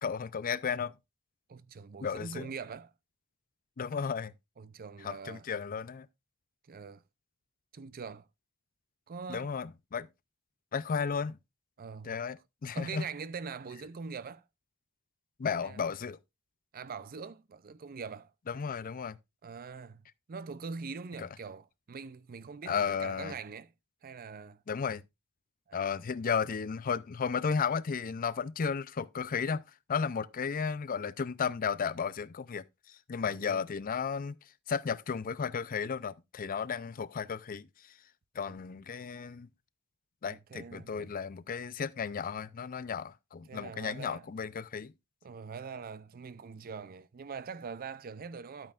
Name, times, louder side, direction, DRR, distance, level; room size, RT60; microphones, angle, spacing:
voice 1, 0.0-0.9 2.0-2.5 3.8-4.3 5.0-6.1 9.3-10.1 10.7-11.4 12.0-13.1 15.4-16.2 18.5-19.2 21.2-21.3 22.7-23.3 24.7-25.0 25.7-34.4 34.7-37.9 38.3-39.5 40.2-44.9, left 6 dB, 40° left, 0.5 m, -34 dB
voice 2, 1.5-2.9 4.6-5.5 6.7-7.0 7.7-8.3 9.1-9.5 11.8-12.2 12.7-14.4 15.6-15.8 16.7-18.3 19.4-23.7 24.0-24.6 25.7-25.9 33.3-33.7 38.4-38.6 40.3-41.2 43.5-44.3 45.2-48.7, right 5 dB, 40° right, 0.5 m, -43 dB
12.5 x 8.8 x 2.4 m
head